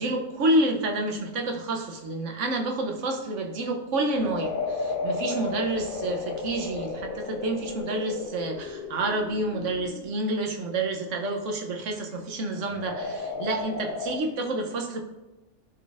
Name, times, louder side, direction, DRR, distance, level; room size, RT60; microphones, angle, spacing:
voice 1, 0.0-15.0, right 2 dB, 85° right, 3 dB, 1.1 m, -29 dB
sound 1, 4.0-10.2 12.6-14.2, left 4 dB, 60° left, 0.6 m, -33 dB
10.5 x 3.9 x 2.5 m, 1.1 s
omnidirectional pair, 1.2 m